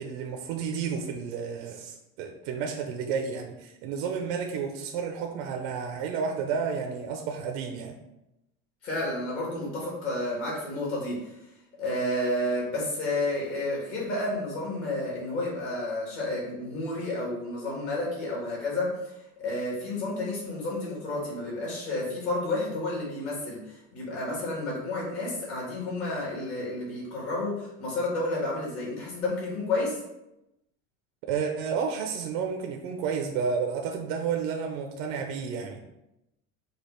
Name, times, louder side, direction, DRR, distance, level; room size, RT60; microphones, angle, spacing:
voice 1, 0.0-8.0 31.3-35.8, right 6 dB, 65° right, 3 dB, 0.6 m, -31 dB
voice 2, 8.8-11.2 11.8-19.1 19.4-30.0, left 2 dB, 40° left, -5 dB, 1.7 m, -31 dB
5.0 x 2.4 x 4.3 m, 0.89 s
cardioid pair, 175°, 34 cm